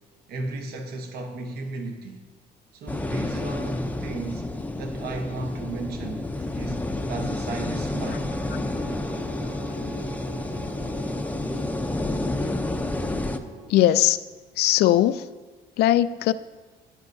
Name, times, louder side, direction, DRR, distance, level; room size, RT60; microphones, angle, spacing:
voice 1, 0.3-2.2 2.7-4.5 4.8-8.3, right 2 dB, 70° right, 3 dB, 1.1 m, -34 dB
sound 1, 2.9-13.4, left 2 dB, 10° left, 0.6 m, -30 dB
sound 2, 7.6-13.7, right 3 dB, 40° right, 2.1 m, -42 dB
voice 2, 13.7-14.2 14.6-15.2 15.8-16.3, left 13 dB, 70° left, 14 dB, 0.4 m, -19 dB
14.5 x 9.4 x 2.7 m, 1.3 s
cardioid pair, 110°, 17 cm